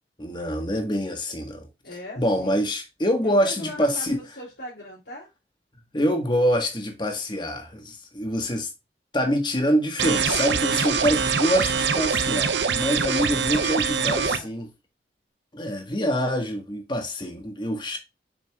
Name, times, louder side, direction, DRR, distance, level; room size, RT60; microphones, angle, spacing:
voice 1, 0.2-1.7 2.2-4.2 5.9-8.7 9.1-14.7 15.5-18.0, equal, 25° left, 1.5 m, -25 dB
voice 2, 1.8-2.6 3.2-5.3 12.7-14.5, left 1 dB, 80° left, 3.2 m, -40 dB
sound 1, 10.0-14.4, right 6 dB, 85° right, 0.7 m, -24 dB
7.3 x 5.8 x 2.4 m
head